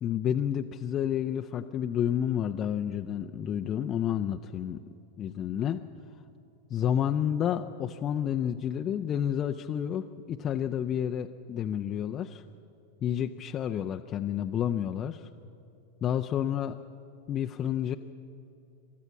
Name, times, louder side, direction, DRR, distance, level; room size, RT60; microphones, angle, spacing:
voice 1, 0.0-4.8 5.2-5.8 6.7-12.4 13.0-15.3 16.0-16.8 17.3-18.0, left 9 dB, 30° left, 5 dB, 0.6 m, -30 dB
28.5 x 13.5 x 7.4 m, 2.7 s
figure-of-eight pair, 90°, 0 cm